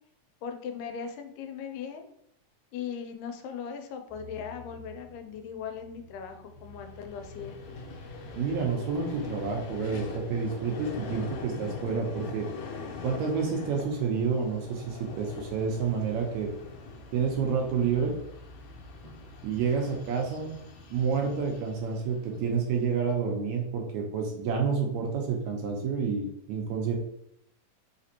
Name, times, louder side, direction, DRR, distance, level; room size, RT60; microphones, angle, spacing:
voice 1, 0.4-2.1 2.7-7.6, left 7 dB, 90° left, 6 dB, 2.2 m, -38 dB
sound 1, 4.1-21.6, equal, 50° left, 0.4 m, -53 dB
Vehicle, 6.6-22.9, left 4 dB, 70° left, 1.8 m, -42 dB
voice 2, 8.4-12.5 13.0-16.5 17.1-18.2 19.4-20.5 20.9-27.0, right 5 dB, 75° right, 1 dB, 1.8 m, -29 dB
5.1 x 3.3 x 2.8 m, 0.77 s
omnidirectional pair, 3.7 m